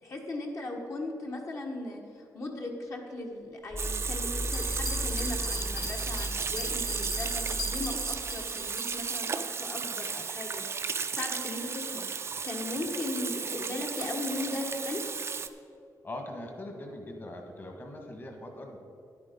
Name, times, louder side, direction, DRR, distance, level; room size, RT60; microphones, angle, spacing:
voice 1, 0.0-15.1, left 2 dB, 45° left, 0 dB, 1.3 m, -38 dB
sound 1, 3.7-8.6, equal, 5° left, 0.9 m, -37 dB
Water tap faucet / Sink (filling or washing), 3.8-15.5, right 5 dB, 40° right, 0.5 m, -34 dB
sound 2, 4.4-8.9, left 3 dB, 75° left, 1.9 m, -40 dB
voice 2, 16.0-18.8, left 1 dB, 30° left, 3 dB, 1.5 m, -41 dB
10.5 x 8.8 x 5.2 m, 2.5 s
wide cardioid pair, 140°, 7 cm